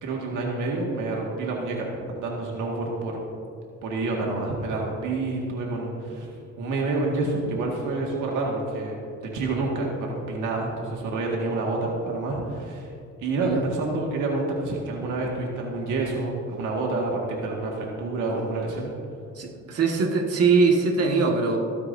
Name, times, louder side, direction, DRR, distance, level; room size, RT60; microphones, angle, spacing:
voice 1, 0.0-1.9 2.1-3.2 3.8-6.3 6.6-9.0 9.3-12.9 13.2-18.9, right 2 dB, 90° right, -1 dB, 2.0 m, -28 dB
voice 2, 19.3-21.6, right 4 dB, 55° right, 0 dB, 1.9 m, -22 dB
25.5 x 9.5 x 2.7 m, 2.6 s
cardioid pair, 90°, 30 cm